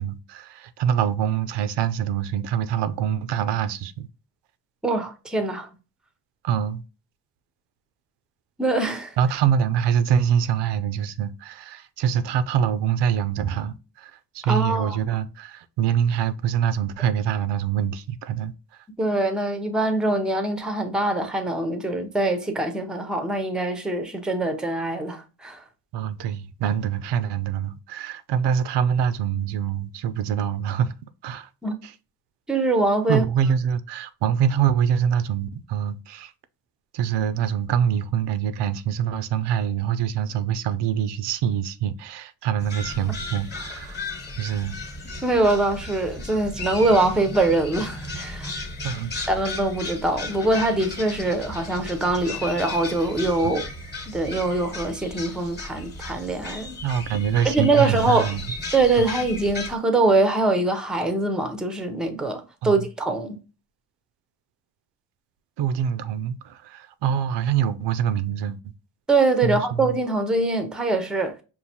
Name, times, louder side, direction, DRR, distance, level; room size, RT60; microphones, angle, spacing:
voice 1, 0.0-4.1 6.4-6.8 9.2-18.5 25.9-30.9 31.2-31.5 31.8-31.9 33.1-36.3 36.9-44.0 44.4-44.8 48.8-49.1 56.8-58.4 59.0-59.1 62.6-62.8 65.6-68.7 69.4-69.9, right 8 dB, 85° right, 0.5 m, -25 dB
voice 2, 4.8-5.7 8.6-9.1 14.4-15.0 19.0-25.6 31.6-31.8 32.5-33.2 45.2-48.5 49.3-53.7 54.1-56.8 57.4-58.3 58.7-63.4 69.1-71.4, right 2 dB, ahead, 0.5 m, -23 dB
sound 1, 42.6-59.8, left 2 dB, 25° left, 1.0 m, -35 dB
5.4 x 2.5 x 2.8 m
cardioid pair, 125°, 41 cm